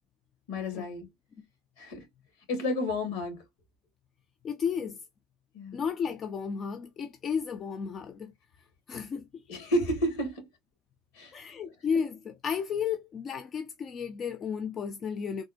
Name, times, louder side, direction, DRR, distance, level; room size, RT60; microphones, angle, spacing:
voice 1, 0.5-1.1 1.8-2.1 2.5-3.4 5.5-5.8 9.5-10.4 11.1-11.3, left 1 dB, 75° left, 1.7 m, -31 dB
voice 2, 4.4-5.0 5.7-8.3 8.9-9.3 11.3-15.4, left 6 dB, 40° left, 0.5 m, -33 dB
3.5 x 2.1 x 2.6 m
hypercardioid pair, 80°, 0 cm